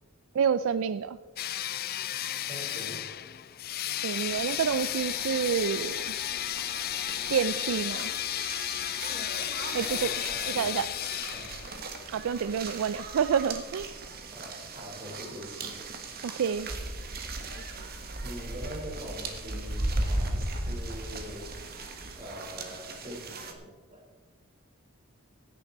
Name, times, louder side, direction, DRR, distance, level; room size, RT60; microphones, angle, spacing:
voice 1, 0.3-1.2 4.0-6.1 7.3-8.1 9.7-10.1 10.5-10.9 12.1-13.9 16.2-16.7, right 7 dB, 65° right, 14 dB, 0.4 m, -28 dB
sound 1, 1.4-11.9, left 12 dB, 45° left, 0.5 m, -33 dB
voice 2, 2.5-3.0 9.8-10.7 11.3-11.5 14.3-15.7 18.2-21.4 22.2-24.0, equal, 30° right, -2 dB, 4.4 m, -43 dB
sound 2, 4.3-23.5, right 2 dB, 45° right, 1.5 m, -38 dB
16.5 x 9.9 x 4.2 m, 1.3 s
head